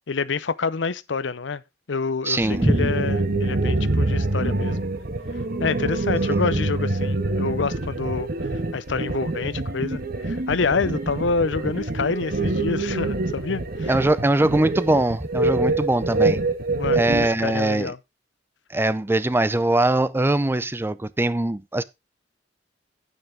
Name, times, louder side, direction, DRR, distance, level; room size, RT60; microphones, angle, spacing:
voice 1, 0.1-1.6 1.9-4.8 5.6-8.3 8.7-13.9 16.8-18.0, left 4 dB, 80° left, 0.6 m, -27 dB
voice 2, 2.2-2.9 6.3-6.4 13.9-16.4 16.9-17.9 18.7-21.8, right 2 dB, 15° right, 0.5 m, -21 dB
sound 1, 2.4-17.3, right 2 dB, 55° right, 1.5 m, -25 dB
9.4 x 9.3 x 3.4 m
head